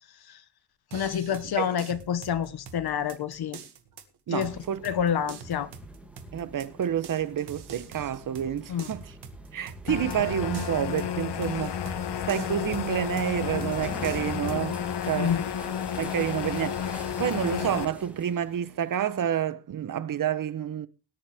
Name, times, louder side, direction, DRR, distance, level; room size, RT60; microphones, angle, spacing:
voice 1, 0.9-3.6 4.3-4.5 4.8-5.7 8.7-8.9 15.2-15.4, left 8 dB, 70° left, 1.3 m, -28 dB
sound 1, 0.9-14.6, right 5 dB, 75° right, 2.1 m, -46 dB
voice 2, 4.3-4.8 6.3-9.0 9.5-15.4 16.0-20.9, right 9 dB, 55° right, 0.9 m, -29 dB
sound 2, 4.4-19.3, right 1 dB, 5° right, 2.4 m, -47 dB
sound 3, 9.9-17.9, left 8 dB, 85° left, 1.4 m, -32 dB
18.5 x 10.5 x 3.5 m
wide cardioid pair, 170°, 40 cm